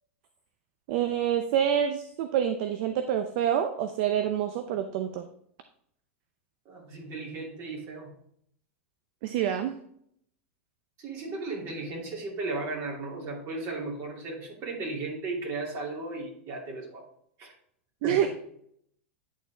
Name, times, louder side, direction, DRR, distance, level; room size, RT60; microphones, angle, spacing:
voice 1, 0.9-5.3 9.2-9.8 18.0-18.3, right 9 dB, 60° right, 8 dB, 0.6 m, -27 dB
voice 2, 6.6-8.2 11.0-17.0 17.4-17.5 18.0-18.3, right 3 dB, 45° right, -2 dB, 2.8 m, -35 dB
10.5 x 4.3 x 3.4 m, 0.69 s
hypercardioid pair, 110°, 7 cm